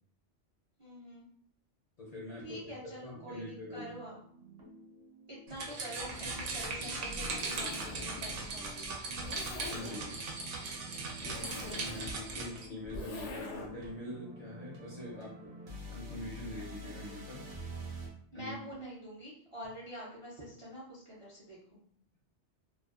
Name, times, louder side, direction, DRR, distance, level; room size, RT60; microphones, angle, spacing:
voice 1, 0.8-1.3 2.4-4.2 5.3-9.2 11.2-11.6 18.3-21.8, equal, 45° right, -6 dB, 0.4 m, -46 dB
voice 2, 2.0-3.9 9.6-10.2 11.3-11.4 11.7-15.5 15.9-17.5 18.3-18.5, left 1 dB, 50° left, -4 dB, 0.5 m, -44 dB
sound 1, 3.2-18.1, right 1 dB, 65° right, 0.9 m, -49 dB
sound 2, 5.5-12.7, right 3 dB, 85° right, 0.9 m, -39 dB
Zipper (clothing), 6.0-13.9, left 2 dB, 85° left, 0.9 m, -45 dB
2.4 x 2.3 x 2.3 m, 0.62 s
omnidirectional pair, 1.2 m